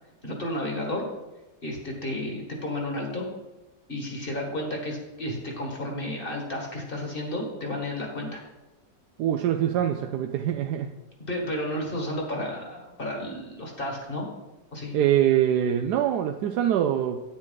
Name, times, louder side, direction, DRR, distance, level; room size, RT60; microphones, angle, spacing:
voice 1, 0.2-1.0 1.6-3.3 3.9-8.4 11.2-14.3 14.7-14.9, left 1 dB, 30° left, 0 dB, 1.8 m, -32 dB
voice 2, 9.2-10.9 14.9-17.2, right 10 dB, 75° right, 5 dB, 1.1 m, -24 dB
9.7 x 8.8 x 4.0 m, 1.1 s
omnidirectional pair, 1.9 m